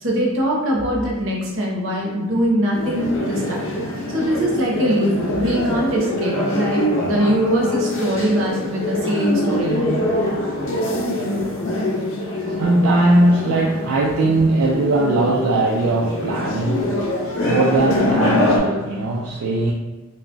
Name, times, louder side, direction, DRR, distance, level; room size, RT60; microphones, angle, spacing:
voice 1, 0.0-3.6 4.1-10.0, equal, 65° right, -2 dB, 0.7 m, -22 dB
sound 1, 2.7-18.6, left 1 dB, 70° left, 0.5 m, -24 dB
voice 2, 12.1-19.7, right 2 dB, 85° right, -3 dB, 0.4 m, -20 dB
2.3 x 2.1 x 3.7 m, 1.2 s
head